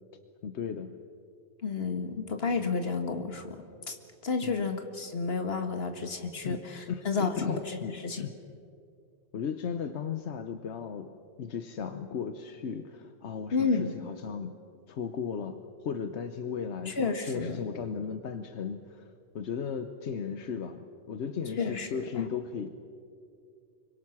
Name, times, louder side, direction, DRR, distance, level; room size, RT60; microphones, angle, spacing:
voice 1, 0.4-1.0 4.4-4.7 6.4-8.4 9.3-14.6 14.9-19.1 19.3-22.7, left 6 dB, 85° left, 9 dB, 1.2 m, -36 dB
voice 2, 1.6-3.6 3.9-4.0 4.2-8.2 13.5-14.0 16.9-17.6 21.6-21.9 22.2-22.3, left 4 dB, 65° left, 6 dB, 2.0 m, -31 dB
25.5 x 23.5 x 6.0 m, 2.4 s
omnidirectional pair, 1.1 m